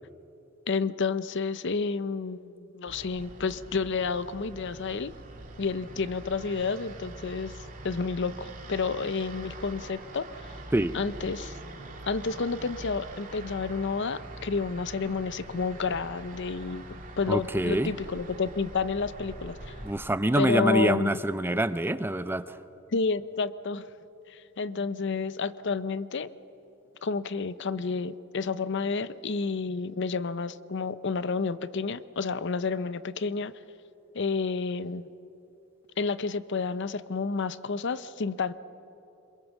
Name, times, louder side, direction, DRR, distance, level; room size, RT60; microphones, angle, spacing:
voice 1, 0.7-5.1 5.6-7.5 7.8-10.3 10.9-11.6 12.1-19.7 20.3-21.2 22.9-23.8 24.3-26.3 27.0-33.5 34.1-35.1 36.0-38.5, left 4 dB, 60° left, 15 dB, 0.7 m, -30 dB
sound 1, 2.9-19.9, right 2 dB, 40° right, 2.6 m, -44 dB
voice 2, 17.3-17.9 19.8-22.4, right 1 dB, 10° right, 13 dB, 0.5 m, -25 dB
26.0 x 22.0 x 7.2 m, 2.9 s
head